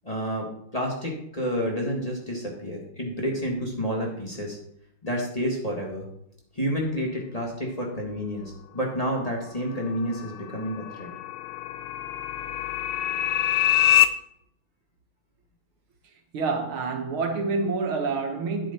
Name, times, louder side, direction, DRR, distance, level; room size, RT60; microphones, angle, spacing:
voice 1, 0.0-0.5 0.7-4.6 5.0-6.1 6.6-11.1, equal, 20° left, 1.8 m, -29 dB
sound 1, 9.7-14.1, left 13 dB, 75° left, 1.4 m, -25 dB
voice 2, 16.3-18.7, right 4 dB, 75° right, 2.2 m, -27 dB
10.5 x 7.9 x 4.3 m
omnidirectional pair, 2.3 m